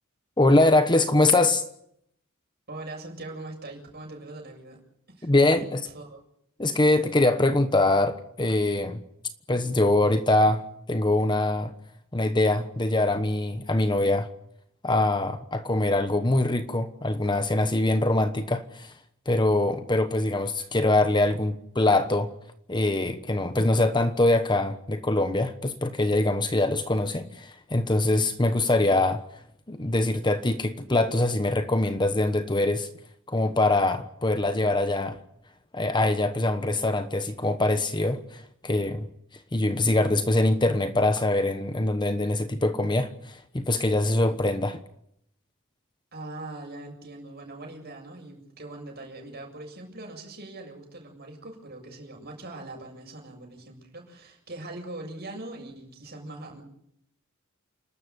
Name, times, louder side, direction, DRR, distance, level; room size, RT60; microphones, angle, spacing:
voice 1, 0.4-1.6 5.2-5.8 6.6-9.0 9.5-10.6 10.9-11.7 12.1-14.3 14.8-18.9 19.3-22.3 22.7-29.2 29.7-32.9 33.3-35.2 35.7-39.1 39.5-44.8, left 2 dB, 20° left, 1.1 m, -23 dB
voice 2, 2.7-4.8 5.2-6.2 46.1-56.6, right 2 dB, 50° right, 7.6 m, -41 dB
29.0 x 13.0 x 9.7 m
head